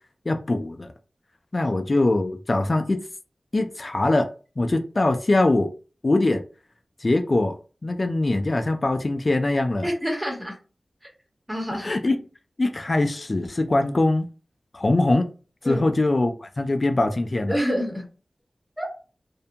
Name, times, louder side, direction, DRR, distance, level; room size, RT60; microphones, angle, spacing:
voice 1, 0.3-0.9 1.5-3.0 3.5-4.3 4.6-5.7 6.0-6.4 7.0-7.6 7.8-9.9 11.8-12.2 12.6-14.3 14.7-15.3 15.6-17.6, left 2 dB, 50° left, 0.3 m, -22 dB
voice 2, 9.8-10.5 11.5-11.9 15.6-15.8 17.5-18.1 18.8-18.9, equal, 20° right, 1.0 m, -27 dB
2.5 x 2.2 x 2.7 m
cardioid pair, 50°, 0 cm